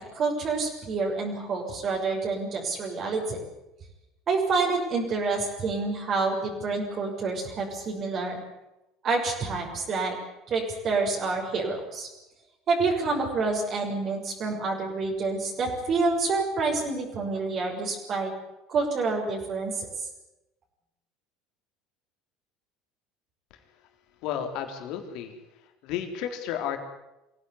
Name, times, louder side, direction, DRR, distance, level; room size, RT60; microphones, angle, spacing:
voice 1, 0.1-3.4 4.3-8.4 9.0-10.2 10.5-12.1 12.7-18.3 18.7-19.9, right 3 dB, 45° right, -1 dB, 6.4 m, -28 dB
voice 2, 24.2-25.4 25.8-26.8, left 9 dB, 60° left, 6 dB, 3.9 m, -32 dB
24.0 x 16.5 x 9.9 m, 0.96 s
hypercardioid pair, 70°, 0 cm